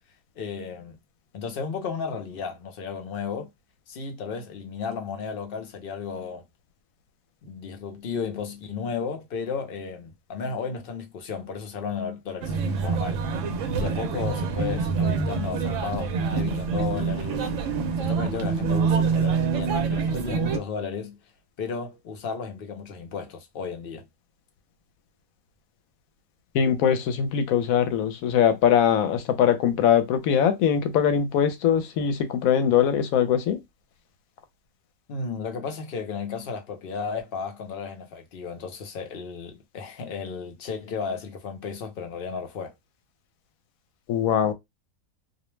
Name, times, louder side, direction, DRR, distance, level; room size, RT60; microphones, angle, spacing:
voice 1, 0.4-1.0 1.3-3.5 3.9-6.5 7.4-13.2 13.8-17.5 18.0-21.2 21.6-24.1 35.1-42.7, left 5 dB, 55° left, 0.7 m, -34 dB
sound 1, 12.4-20.6, right 5 dB, 70° right, 0.9 m, -26 dB
voice 2, 26.5-33.6 44.1-44.5, left 8 dB, 80° left, 1.0 m, -22 dB
2.5 x 2.1 x 3.1 m
omnidirectional pair, 1.4 m